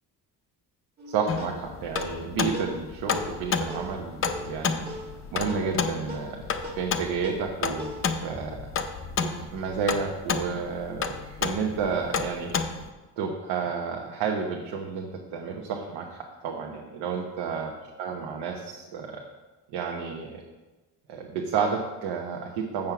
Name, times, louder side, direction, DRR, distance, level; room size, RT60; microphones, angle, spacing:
sound 1, 1.0-9.7, left 1 dB, 25° right, 1.2 m, -42 dB
voice 1, 1.1-4.9 5.3-6.4 6.7-7.9 8.2-8.6 9.2-12.5 13.2-17.7 18.0-19.2 19.7-20.4 21.1-22.9, right 5 dB, 80° right, 1 dB, 1.1 m, -31 dB
sound 2, 1.3-12.9, left 6 dB, 35° left, 0.6 m, -31 dB
7.3 x 6.5 x 5.9 m, 1.2 s
cardioid pair, 150°, 39 cm